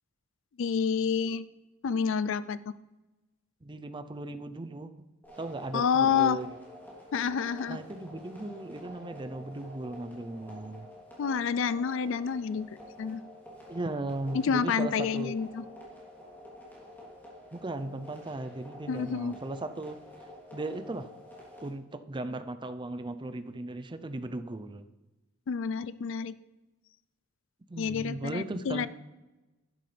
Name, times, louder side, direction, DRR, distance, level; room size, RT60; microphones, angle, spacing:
voice 1, 0.6-1.5 1.8-2.6 5.7-6.4 7.1-7.8 11.2-12.7 13.0-13.2 14.3-15.6 18.9-19.4 25.5-26.4 27.8-28.9, left 6 dB, 65° left, 17 dB, 0.4 m, -28 dB
voice 2, 3.6-4.9 5.4-6.6 7.7-10.9 13.7-15.3 17.5-20.0 20.5-21.1 21.6-24.9 27.7-28.9, right 2 dB, 25° right, 10 dB, 0.5 m, -37 dB
sound 1, 5.2-21.7, left 1 dB, 10° left, 2.9 m, -49 dB
12.0 x 11.0 x 3.4 m, 1.1 s
head